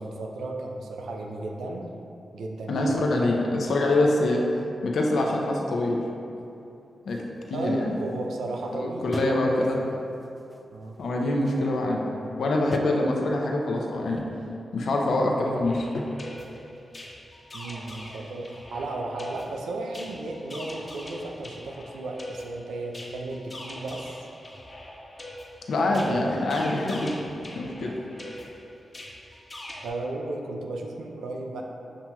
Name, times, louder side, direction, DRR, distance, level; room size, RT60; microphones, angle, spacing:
voice 1, 0.0-1.9 2.3-3.1 7.5-9.6 10.7-11.0 17.5-24.2 25.9-26.4 29.8-31.6, right 2 dB, 85° right, 1 dB, 0.4 m, -34 dB
voice 2, 2.7-4.5 4.8-6.0 7.0-8.0 8.7-9.8 11.0-12.0 12.4-14.3 14.7-16.1 25.7-27.2 27.5-28.0 28.3-28.4, left 2 dB, 80° left, 0 dB, 0.5 m, -25 dB
sound 1, 7.1-8.7 9.1-9.6 9.9-11.1 11.4-11.8 12.7-12.8, equal, 5° right, 0.3 m, -39 dB
sound 2, 15.5-29.9, left 1 dB, 40° left, 0.9 m, -43 dB
7.2 x 2.9 x 2.3 m, 2.7 s
supercardioid pair, 45°, 0 cm